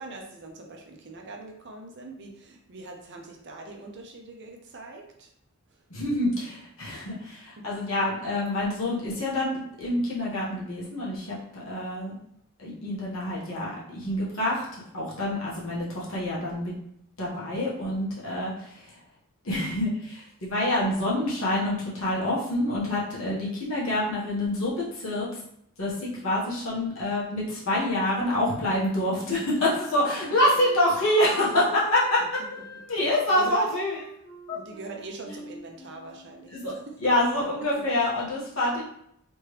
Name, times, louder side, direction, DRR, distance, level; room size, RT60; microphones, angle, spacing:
voice 1, 0.0-5.3 5.7-5.8 7.6-7.7 17.3-17.6 18.1-18.3 26.1-26.2 29.9-30.3 33.4-33.8 34.5-37.1 37.7-37.8, right 3 dB, 55° right, 2 dB, 0.7 m, -42 dB
voice 2, 5.9-11.4 11.6-12.2 12.6-16.7 17.2-19.0 19.4-25.3 25.8-32.4 32.9-34.0 34.5-34.6 36.5-36.7 37.0-38.8, left 1 dB, 70° left, -6 dB, 1.5 m, -26 dB
Wind instrument woodwind instrument, 29.6-36.6, left 1 dB, 50° left, 1.0 m, -44 dB
3.4 x 3.1 x 3.3 m, 0.71 s
head